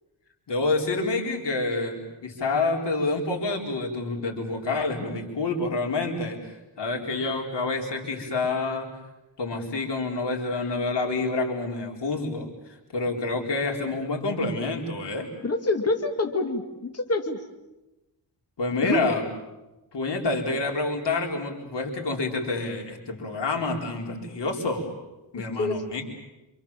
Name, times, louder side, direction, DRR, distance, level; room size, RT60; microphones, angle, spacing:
voice 1, 0.5-6.5 6.8-8.9 9.4-12.5 12.9-15.3 18.6-19.3 19.9-24.9 25.3-26.0, left 3 dB, 90° left, 1 dB, 4.7 m, -28 dB
voice 2, 15.4-17.4 18.8-19.0 25.4-25.8, left 2 dB, 35° left, 4 dB, 2.3 m, -26 dB
28.0 x 26.5 x 7.4 m, 1.0 s
wide cardioid pair, 105°, 41 cm